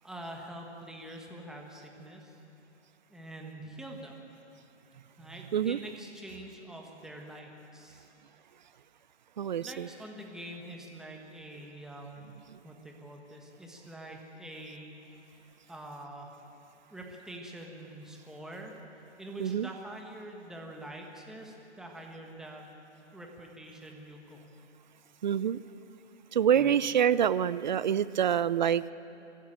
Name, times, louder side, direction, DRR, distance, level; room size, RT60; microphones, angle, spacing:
voice 1, 0.0-2.3 3.1-4.1 5.2-8.1 9.6-12.3 12.6-15.0 15.7-16.3 16.9-18.8 19.2-22.7 23.1-24.4 26.5-26.8, right 1 dB, ahead, 0 dB, 1.5 m, -45 dB
voice 2, 9.4-9.9 19.4-19.7 25.2-25.6 26.3-28.9, right 9 dB, 40° right, 18 dB, 0.5 m, -26 dB
23.0 x 15.0 x 9.0 m, 2.9 s
hypercardioid pair, 150°, 35 cm